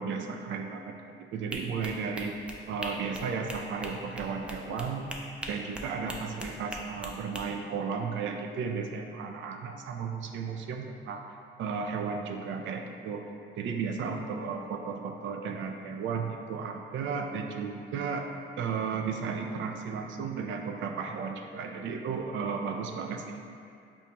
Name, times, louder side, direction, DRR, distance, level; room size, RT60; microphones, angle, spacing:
voice 1, 0.0-2.3 2.7-5.1 5.5-11.2 11.6-13.2 13.6-18.3 18.6-23.4, right 5 dB, 70° right, 3 dB, 0.4 m, -34 dB
sound 1, 1.5-7.4, equal, 5° right, 0.3 m, -41 dB
5.2 x 2.2 x 2.8 m, 2.5 s
cardioid pair, 90°, 20 cm